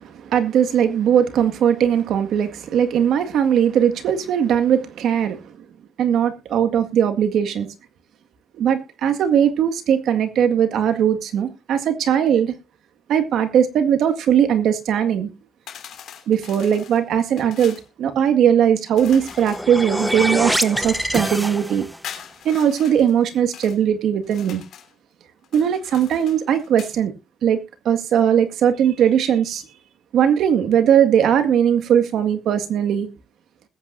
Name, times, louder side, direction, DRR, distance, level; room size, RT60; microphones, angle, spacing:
voice 1, 0.0-5.5 6.0-7.7 8.5-12.5 13.1-15.3 16.3-21.9 22.4-24.6 25.5-27.1 27.4-29.6 30.1-33.1, right 9 dB, 75° right, 1.9 m, -19 dB
sound 1, 15.7-17.9 19.0-21.5 22.0-23.8 24.2-24.9 25.4-27.0, left 9 dB, 75° left, 3.2 m, -42 dB
sound 2, 19.1-22.1, equal, ahead, 1.0 m, -25 dB
20.5 x 8.8 x 2.6 m
cardioid pair, 90°, 0 cm